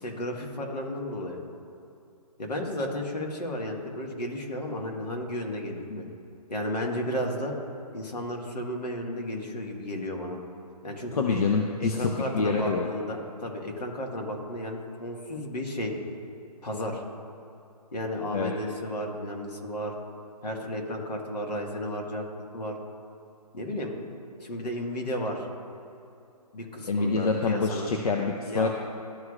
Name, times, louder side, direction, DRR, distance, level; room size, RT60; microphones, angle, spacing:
voice 1, 0.0-1.4 2.4-6.1 6.5-7.5 7.9-10.4 10.8-11.5 11.8-15.9 16.6-17.0 17.9-19.9 20.4-22.2 22.5-22.8 23.5-23.9 24.4-25.5 26.5-27.9 28.5-28.7, left 1 dB, 80° left, 1 dB, 1.6 m, -33 dB
voice 2, 11.1-12.9 18.3-18.5 26.9-28.7, left 4 dB, 65° left, 2 dB, 0.7 m, -26 dB
12.5 x 4.7 x 2.4 m, 2.7 s
hypercardioid pair, 160°, 20 cm